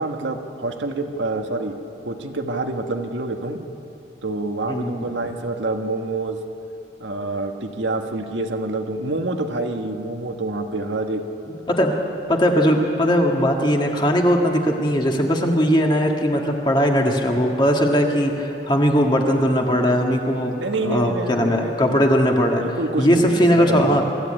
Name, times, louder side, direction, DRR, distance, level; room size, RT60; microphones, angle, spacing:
voice 1, 0.0-1.7 2.0-3.6 4.2-6.4 7.0-11.2 20.6-22.0 22.6-24.0, right 2 dB, 80° right, 4 dB, 1.5 m, -27 dB
voice 2, 4.7-5.0 11.7-11.9 12.3-20.5 20.8-24.0, equal, 25° left, 1 dB, 1.8 m, -19 dB
24.0 x 14.0 x 8.9 m, 2.9 s
head